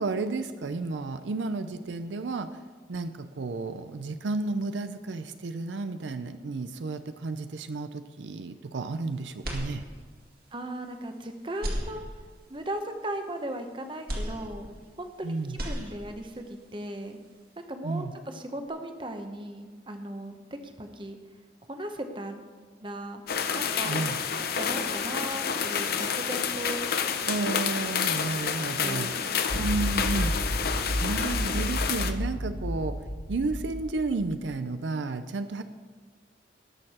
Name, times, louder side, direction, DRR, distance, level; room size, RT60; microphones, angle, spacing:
voice 1, 0.0-2.5 2.9-9.8 15.2-15.6 17.8-18.1 23.9-24.2 27.3-30.3 31.0-33.0 33.3-35.6, right 3 dB, 75° right, 10 dB, 0.5 m, -32 dB
sound 1, 9.4-10.3 10.8-10.9 11.5-12.6 14.1-15.2 15.4-16.4, equal, 50° right, 2.1 m, -35 dB
voice 2, 10.5-12.0 12.5-14.7 15.0-17.2 17.7-20.4 20.6-21.2 21.7-22.4 22.8-23.2 23.5-24.0 24.4-26.8 28.8-29.2 29.5-29.7, right 1 dB, 25° right, 6 dB, 0.9 m, -37 dB
sound 2, 23.3-32.1, left 7 dB, 55° left, 0.7 m, -29 dB
sound 3, 29.5-34.3, equal, 90° left, 2.8 m, -31 dB
19.0 x 6.6 x 4.3 m, 1.4 s
head